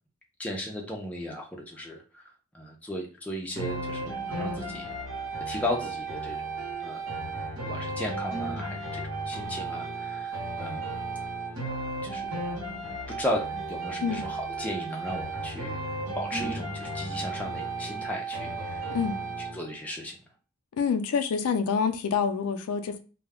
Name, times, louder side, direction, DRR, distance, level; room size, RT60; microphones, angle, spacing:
voice 1, 0.4-4.9 5.5-6.5 6.8-7.1 7.6-11.0 12.0-12.3 12.9-15.8 16.1-18.9 19.4-20.2, left 1 dB, 5° left, 0.4 m, -36 dB
sound 1, 3.6-19.6, right 3 dB, 80° right, 0.9 m, -34 dB
voice 2, 18.9-19.2 20.8-23.0, left 6 dB, 85° left, 0.4 m, -27 dB
2.2 x 2.0 x 3.4 m
head